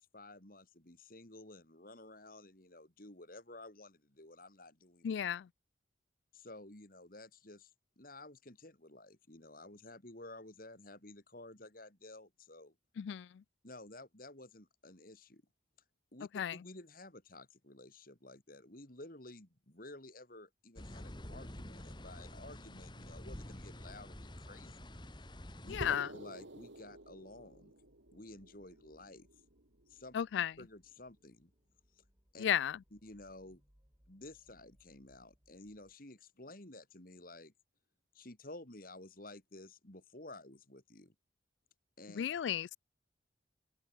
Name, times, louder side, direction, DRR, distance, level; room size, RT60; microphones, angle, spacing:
voice 1, 0.0-5.1 6.3-7.7 8.0-12.7 13.6-15.4 16.1-24.9 25.6-25.8 26.1-27.7 28.1-29.3 29.9-30.2 30.6-31.5 32.0-32.1 32.3-32.5 32.9-33.6 34.1-37.5 38.1-41.1 42.0-42.2, left 2 dB, 50° left, 3.0 m, -53 dB
voice 2, 5.0-5.4 13.0-13.3 16.3-16.5 25.7-26.1 30.1-30.5 32.4-32.8 42.2-42.8, left 9 dB, 70° left, 0.3 m, -33 dB
sound 1, 20.8-26.0, left 1 dB, 25° left, 2.7 m, -48 dB
sound 2, 21.6-35.9, equal, 20° right, 6.9 m, -72 dB
sound 3, 25.8-30.2, right 1 dB, 80° right, 3.7 m, -50 dB
head